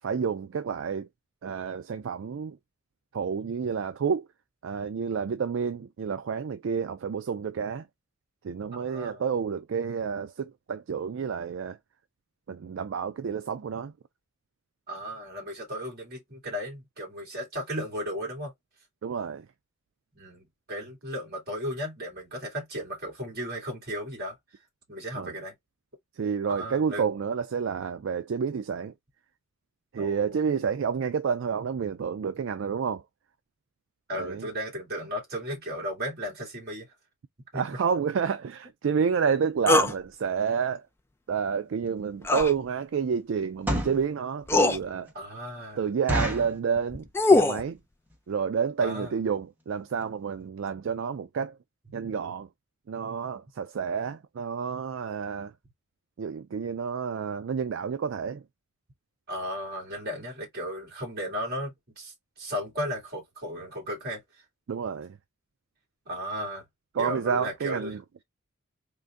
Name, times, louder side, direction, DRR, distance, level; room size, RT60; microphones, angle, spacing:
voice 1, 0.0-1.1 1.4-2.6 3.1-4.3 4.6-7.9 8.4-11.8 12.5-13.9 19.0-19.5 25.2-25.3 26.2-28.9 29.9-33.0 34.1-34.5 37.5-40.8 41.3-45.1 45.8-47.0 47.3-47.8 48.3-51.6 51.9-52.5 52.9-55.5 56.2-58.4 64.7-65.2 67.0-68.0, right 6 dB, 65° right, 0.3 m, -29 dB
voice 2, 8.7-9.2 14.9-18.5 20.1-24.4 24.9-25.6 26.5-27.1 30.0-30.4 34.1-36.9 37.5-37.6 45.1-45.9 48.8-49.1 59.3-64.2 66.1-66.6 67.0-68.0, equal, 45° right, 2.4 m, -35 dB
sound 1, 39.7-39.9 42.2-42.5 43.9-44.0 44.5-44.8 46.8-47.6, left 2 dB, 10° left, 0.3 m, -21 dB
sound 2, 41.9-42.0 42.5-42.7 43.4-44.1 44.6-44.7 45.1-45.2 45.5-45.6 46.1-46.6 47.2-47.5 47.7-47.8 48.1-48.3 48.9-49.0 49.2-49.4 49.7-49.8 50.0-50.1, equal, 10° right, 0.9 m, -29 dB
3.8 x 2.5 x 3.4 m
head